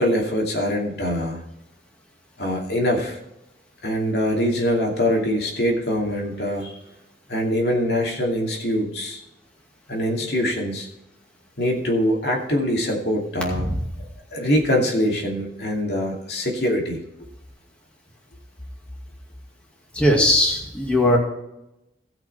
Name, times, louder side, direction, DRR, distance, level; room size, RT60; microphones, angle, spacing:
voice 1, 0.0-1.4 2.4-3.2 3.8-6.7 7.3-9.2 9.9-10.9 11.6-13.7 14.3-17.0, equal, 65° left, -1 dB, 2.5 m, -23 dB
voice 2, 19.9-21.2, left 1 dB, 5° left, -2 dB, 2.3 m, -18 dB
16.5 x 6.0 x 4.6 m, 0.88 s
head